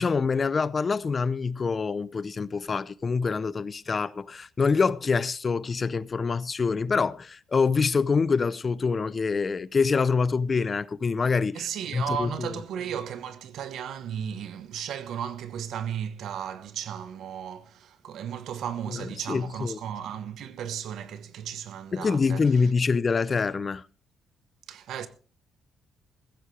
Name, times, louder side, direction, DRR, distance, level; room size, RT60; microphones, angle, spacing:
voice 1, 0.0-11.7 11.9-12.5 18.9-19.8 21.9-23.8, left 5 dB, 35° left, 0.6 m, -25 dB
voice 2, 11.5-22.7 24.7-25.1, right 8 dB, 75° right, 1.2 m, -35 dB
15.0 x 15.0 x 3.3 m
cardioid pair, 90°, 0 cm